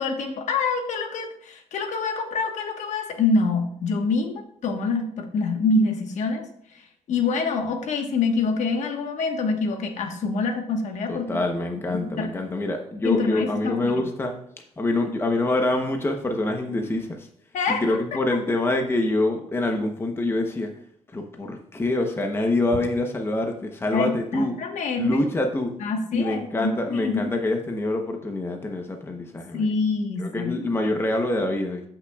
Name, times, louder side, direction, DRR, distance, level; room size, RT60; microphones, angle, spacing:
voice 1, 0.0-6.4 7.1-11.4 11.9-12.3 13.0-14.0 17.5-18.2 23.9-25.2 25.8-27.3 29.5-30.6, left 4 dB, 80° left, 4 dB, 1.3 m, -26 dB
voice 2, 11.1-14.4 14.8-17.3 17.7-20.7 21.1-24.6 25.0-25.7 26.1-29.7 30.2-31.8, left 2 dB, 20° left, 3 dB, 0.9 m, -25 dB
14.5 x 5.9 x 2.4 m, 0.66 s
cardioid pair, 135°, 12 cm